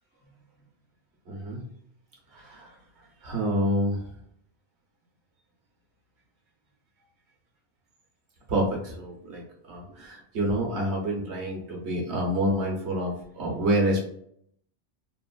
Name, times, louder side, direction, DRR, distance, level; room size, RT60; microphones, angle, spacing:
voice 1, 1.3-1.6 2.3-2.8 3.2-4.0 8.5-14.0, equal, 70° right, -2 dB, 1.3 m, -28 dB
3.6 x 2.4 x 2.3 m, 0.67 s
omnidirectional pair, 1.2 m